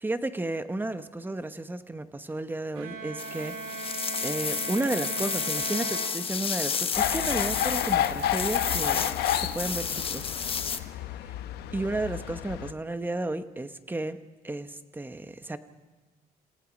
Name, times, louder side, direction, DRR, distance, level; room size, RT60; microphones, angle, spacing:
voice 1, 0.0-4.0 4.2-10.3 11.2-11.3 11.7-14.2 14.4-15.6, right 2 dB, 10° right, 10 dB, 1.2 m, -33 dB
Bowed string instrument, 2.8-6.8, right 5 dB, 90° right, 2.0 m, -38 dB
sound 1, 3.2-10.8, left 6 dB, 35° left, 1.2 m, -31 dB
sound 2, 6.9-12.7, left 11 dB, 75° left, 1.0 m, -30 dB
29.0 x 17.5 x 5.3 m, 1.2 s
cardioid pair, 110°, 17 cm